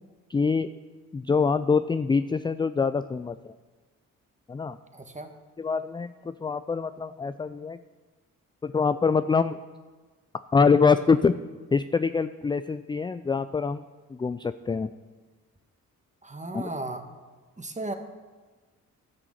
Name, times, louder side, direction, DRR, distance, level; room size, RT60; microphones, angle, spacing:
voice 1, 0.3-0.7 1.1-3.5 4.5-4.8 5.6-7.8 8.6-9.6 10.5-11.3 11.7-13.8 14.1-14.9 16.5-16.6, left 5 dB, 15° left, 12 dB, 0.3 m, -24 dB
voice 2, 4.9-5.3 16.2-17.0 17.6-17.9, right 2 dB, 20° right, 6 dB, 1.5 m, -35 dB
12.0 x 6.2 x 6.5 m, 1.3 s
hypercardioid pair, 45°, 38 cm